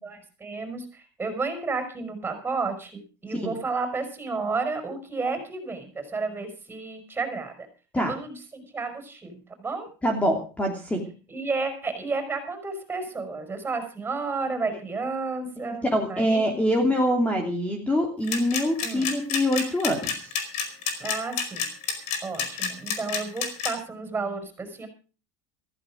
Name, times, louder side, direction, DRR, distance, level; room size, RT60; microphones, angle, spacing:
voice 1, 0.0-7.7 8.0-9.9 11.3-16.6 18.8-19.1 21.0-21.7 22.2-24.9, right 4 dB, 15° right, 7 dB, 5.9 m, -32 dB
voice 2, 10.0-11.0 15.6-20.3, equal, 10° left, 3 dB, 2.9 m, -25 dB
sound 1, 18.2-23.7, left 7 dB, 60° left, 4.9 m, -28 dB
15.0 x 14.5 x 5.0 m, 0.37 s
supercardioid pair, 115°, 13 cm